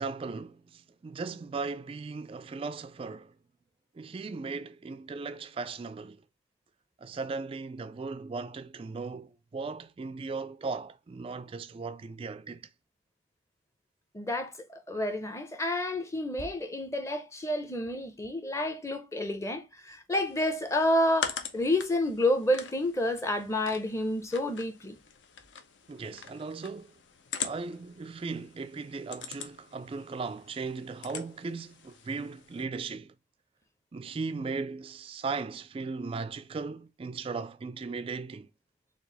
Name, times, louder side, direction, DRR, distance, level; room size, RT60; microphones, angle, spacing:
voice 1, 0.0-3.3 4.0-6.2 7.0-12.7 25.9-26.9 27.4-33.1 33.9-38.5, right 4 dB, 30° right, 0.3 m, -37 dB
voice 2, 14.1-14.5 14.9-25.0, left 1 dB, 15° left, 0.6 m, -29 dB
sound 1, 20.1-32.6, left 7 dB, 75° left, 0.7 m, -43 dB
4.5 x 2.4 x 3.9 m
head